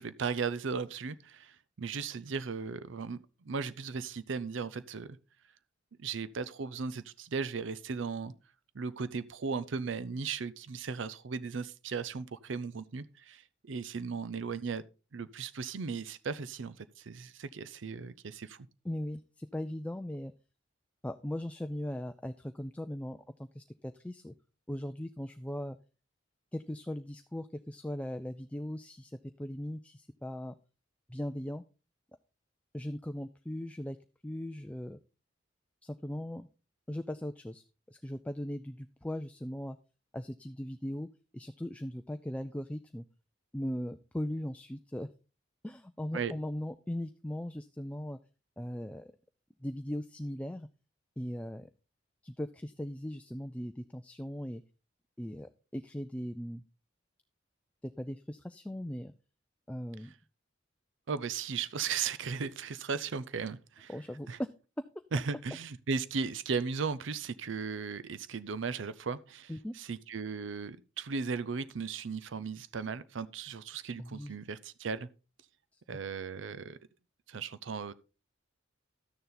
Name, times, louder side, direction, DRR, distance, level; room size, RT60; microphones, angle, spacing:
voice 1, 0.0-3.2 3.4-5.2 6.0-8.3 8.7-14.8 15.1-18.7 46.1-46.3 61.1-63.9 64.3-64.4 65.1-75.1 75.9-76.8 77.3-77.9, right 5 dB, 70° right, 0.5 m, -36 dB
voice 2, 18.8-20.3 21.0-24.3 24.7-25.8 26.5-30.5 31.1-31.6 32.7-34.0 34.2-35.0 35.8-36.5 36.9-37.6 38.0-39.8 40.1-41.1 41.3-43.0 43.5-45.1 45.6-48.2 48.6-49.1 49.6-50.7 51.2-51.7 52.2-54.6 55.2-56.6 57.8-59.1 59.7-60.1 63.9-64.3 69.5-69.7 74.0-74.3 75.7-75.8, left 1 dB, 5° left, 0.4 m, -39 dB
12.5 x 6.9 x 3.9 m
head